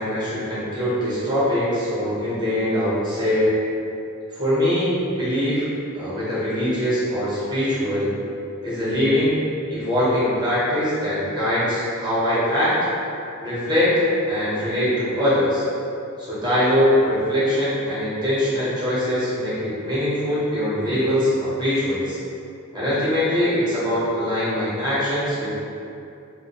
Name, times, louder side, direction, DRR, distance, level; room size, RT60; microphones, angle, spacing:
voice 1, 0.0-3.5 4.3-5.7 5.9-8.1 8.6-9.3 9.7-12.7 13.4-13.9 14.3-15.6 16.2-22.2 22.7-25.7, left 1 dB, 20° right, -10 dB, 0.8 m, -22 dB
2.3 x 2.1 x 2.8 m, 2.7 s
head